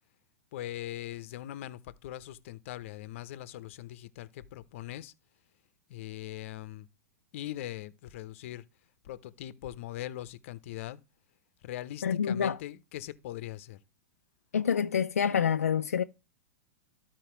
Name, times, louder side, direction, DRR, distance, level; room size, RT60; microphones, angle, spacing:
voice 1, 0.5-5.1 5.9-6.9 7.3-8.6 9.0-11.0 11.6-13.8, left 13 dB, 60° left, 0.8 m, -41 dB
voice 2, 12.0-12.6 14.5-16.0, left 7 dB, 85° left, 0.5 m, -27 dB
12.5 x 4.6 x 4.5 m
hypercardioid pair, 110°, 8 cm